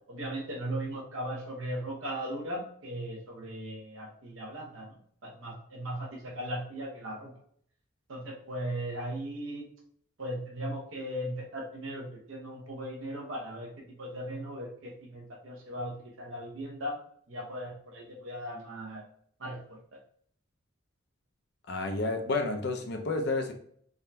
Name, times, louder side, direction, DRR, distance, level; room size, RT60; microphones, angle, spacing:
voice 1, 0.1-7.3 8.1-9.6 10.2-17.0 17.3-19.0 19.4-19.8, right 1 dB, 85° right, 0 dB, 0.8 m, -38 dB
voice 2, 21.7-23.5, left 3 dB, 55° left, 4 dB, 0.5 m, -30 dB
3.5 x 2.6 x 2.2 m, 0.63 s
head